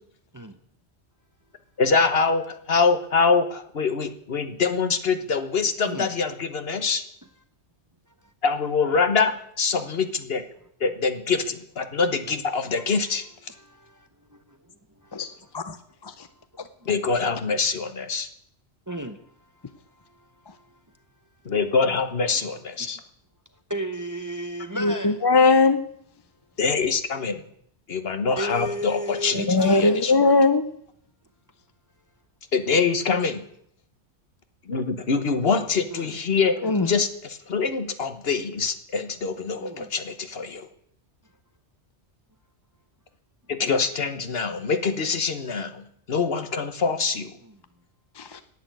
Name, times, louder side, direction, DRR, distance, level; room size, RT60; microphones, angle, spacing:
voice 1, 1.8-7.0 8.4-10.4 10.8-13.2 16.8-18.3 21.4-23.0 26.6-27.4 27.9-30.3 32.5-33.4 34.7-40.7 43.5-47.3, left 4 dB, 60° left, 1.3 m, -24 dB
voice 2, 13.6-14.6 15.0-15.4 18.9-19.2 20.5-20.7 23.7-25.2 28.4-30.0 35.9-36.2 36.6-36.8 39.6-39.9, equal, 20° right, 0.7 m, -34 dB
voice 3, 24.7-25.8 29.3-30.7 36.6-36.9 48.2-48.4, left 3 dB, 30° left, 0.5 m, -20 dB
10.5 x 8.4 x 9.2 m
omnidirectional pair, 1.1 m